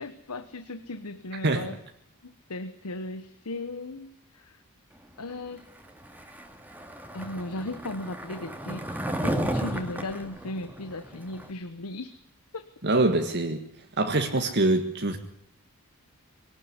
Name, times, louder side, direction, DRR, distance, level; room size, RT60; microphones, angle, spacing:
voice 1, 0.0-1.8 2.2-4.6 5.2-5.6 7.1-12.1 12.5-12.7, left 2 dB, 90° left, 11 dB, 1.2 m, -37 dB
Skateboard, 6.0-11.5, right 1 dB, 10° right, 2.3 m, -33 dB
voice 2, 12.8-13.6 14.0-15.2, right 2 dB, 50° right, 5 dB, 1.8 m, -24 dB
23.0 x 18.5 x 9.7 m, 0.71 s
head